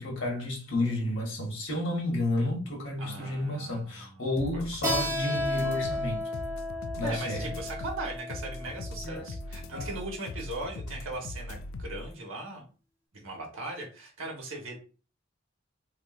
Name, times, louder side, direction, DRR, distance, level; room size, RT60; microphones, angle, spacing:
voice 1, 0.0-6.3 7.0-7.5 9.0-9.3 9.7-9.9, left 1 dB, 65° left, 1.1 m, -31 dB
voice 2, 3.0-4.2 4.5-5.0 7.0-12.6 13.1-14.7, right 2 dB, 80° right, 1.1 m, -39 dB
sound 1, 4.4-12.1, left 2 dB, 90° left, 0.3 m, -40 dB
Keyboard (musical), 4.8-10.1, left 1 dB, 15° right, 0.8 m, -34 dB
3.3 x 2.9 x 2.4 m
head